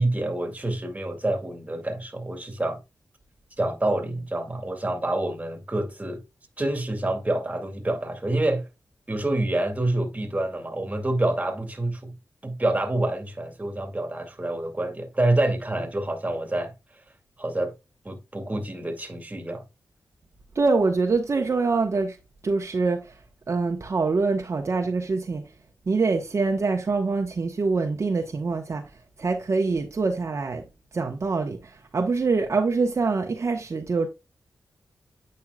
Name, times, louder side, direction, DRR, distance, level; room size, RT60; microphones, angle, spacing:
voice 1, 0.0-2.8 3.6-6.2 6.6-8.7 9.1-12.1 12.4-16.7 17.4-17.7 18.0-19.6, right 1 dB, 25° right, 2.1 m, -27 dB
voice 2, 20.5-22.2 22.4-23.1 23.5-25.4 25.9-28.8 29.2-30.6 30.9-34.1, right 4 dB, 50° right, 1.0 m, -24 dB
8.9 x 5.4 x 2.3 m
cardioid pair, 70°, 6 cm